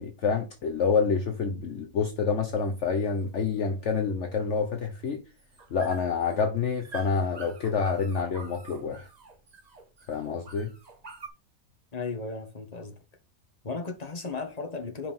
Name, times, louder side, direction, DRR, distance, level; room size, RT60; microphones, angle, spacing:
voice 1, 0.0-5.2 5.7-9.0 10.1-10.7, left 5 dB, 55° left, 1.2 m, -27 dB
sound 1, 0.6-11.3, right 4 dB, 30° right, 1.1 m, -49 dB
voice 2, 11.9-13.0 13.6-15.1, left 4 dB, 30° left, 1.6 m, -35 dB
5.5 x 4.8 x 5.6 m
omnidirectional pair, 1.5 m